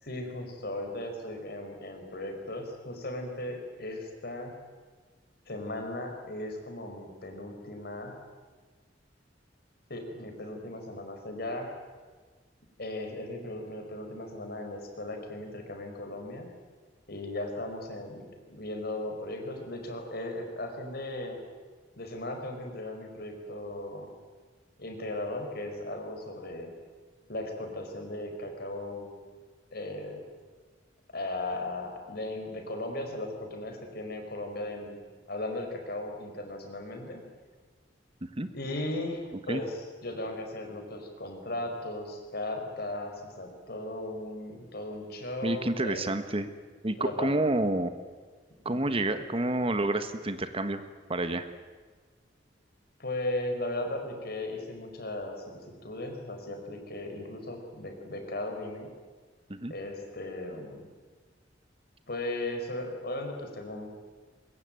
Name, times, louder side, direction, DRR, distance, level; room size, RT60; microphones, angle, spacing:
voice 1, 0.0-4.5 5.5-8.2 9.9-11.7 12.8-16.5 17.1-21.4 22.0-24.1 24.8-26.7 27.3-29.1 29.7-30.2 31.1-35.0 35.3-37.2 38.5-46.0 47.0-47.3 48.7-48.9 53.0-58.9 59.7-60.9 62.1-63.9, left 1 dB, 60° left, 4 dB, 5.0 m, -37 dB
voice 2, 45.4-46.5 46.8-47.9 48.6-50.8 51.1-51.5 59.5-59.7, right 2 dB, 30° right, 10 dB, 1.3 m, -29 dB
22.5 x 22.0 x 9.2 m, 1.4 s
head